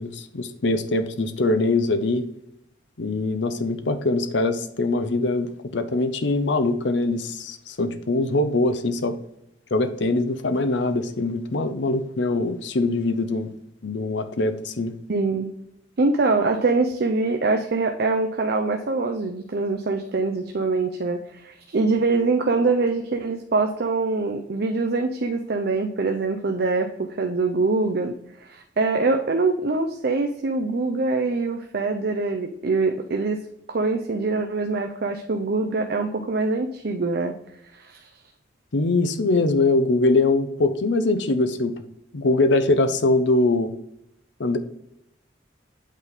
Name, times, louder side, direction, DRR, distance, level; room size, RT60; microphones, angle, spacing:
voice 1, 0.0-2.3 3.0-9.2 9.7-13.5 13.8-14.9 38.7-41.7 42.1-43.7 44.4-44.6, left 2 dB, 70° left, 10 dB, 0.7 m, -22 dB
voice 2, 15.1-15.5 16.0-33.4 33.7-37.4 37.8-38.1, right 3 dB, 55° right, 4 dB, 0.5 m, -24 dB
8.3 x 4.1 x 3.5 m, 0.78 s
head